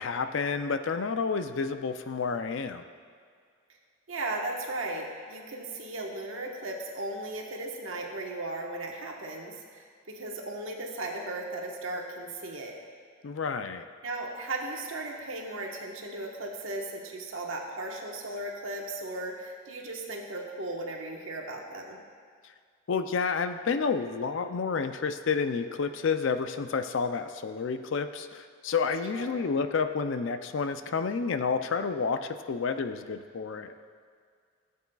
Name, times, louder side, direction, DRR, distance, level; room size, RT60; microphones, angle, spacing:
voice 1, 0.0-2.8 13.2-13.9 22.9-33.7, left 5 dB, 65° left, 9 dB, 0.4 m, -30 dB
voice 2, 4.1-12.8 14.0-22.0 29.1-29.5, right 2 dB, 75° right, 0 dB, 1.2 m, -36 dB
17.0 x 8.3 x 2.3 m, 2.1 s
head